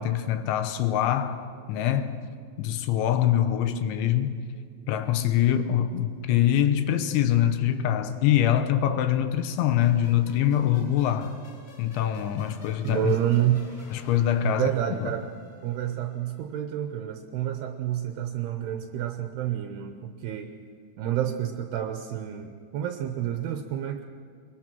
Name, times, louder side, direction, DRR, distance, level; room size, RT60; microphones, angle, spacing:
voice 1, 0.0-2.2 2.6-4.4 4.9-11.3 11.8-13.1 13.9-14.7 15.0-15.1, left 11 dB, 90° left, 3.4 m, -24 dB
sound 1, 9.8-16.4, left 3 dB, 25° left, 4.9 m, -52 dB
voice 2, 12.8-13.7 14.4-15.3 15.6-20.5 21.0-24.0, right 11 dB, 80° right, 2.6 m, -29 dB
22.0 x 22.0 x 6.1 m
omnidirectional pair, 5.3 m